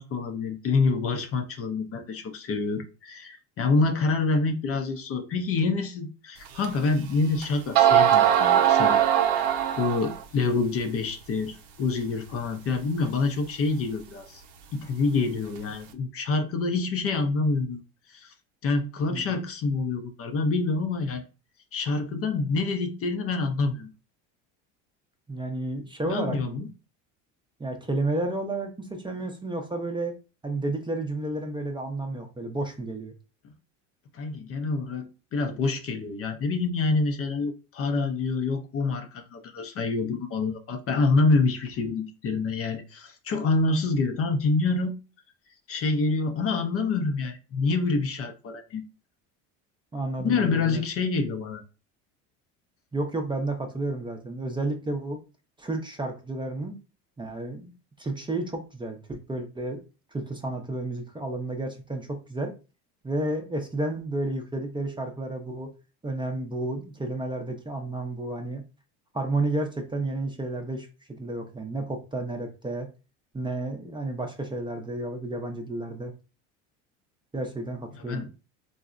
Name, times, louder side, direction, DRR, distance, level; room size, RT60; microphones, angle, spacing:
voice 1, 0.0-9.1 9.8-14.4 14.7-17.8 18.1-18.3 18.6-21.2 21.7-23.9 26.1-26.7 34.1-45.0 45.7-48.8 50.2-51.6 78.1-78.3, left 3 dB, 40° left, 0.5 m, -27 dB
sound 1, 6.6-6.7 7.4-7.5 7.8-10.2, right 10 dB, 65° right, 0.6 m, -20 dB
voice 2, 25.3-26.6 27.6-30.2 30.4-33.1 49.9-50.8 52.9-55.2 55.6-56.7 57.2-57.7 58.0-59.8 60.1-62.5 63.0-65.7 66.0-68.6 69.1-70.9 71.2-72.9 73.3-76.1 77.3-78.2, right 2 dB, 15° right, 0.5 m, -31 dB
3.8 x 2.0 x 2.4 m
supercardioid pair, 95°, 38 cm